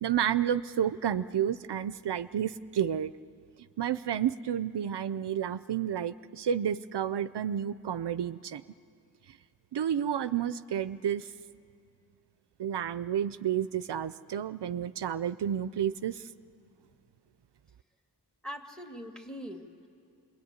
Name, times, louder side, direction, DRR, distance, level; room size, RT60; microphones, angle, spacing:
voice 1, 0.0-3.1 3.8-8.6 9.7-11.3 12.6-16.3, right 9 dB, 85° right, 14 dB, 0.5 m, -30 dB
voice 2, 18.4-19.9, equal, ahead, 4 dB, 2.1 m, -42 dB
25.5 x 21.0 x 9.5 m, 2.5 s
wide cardioid pair, 50°, 40 cm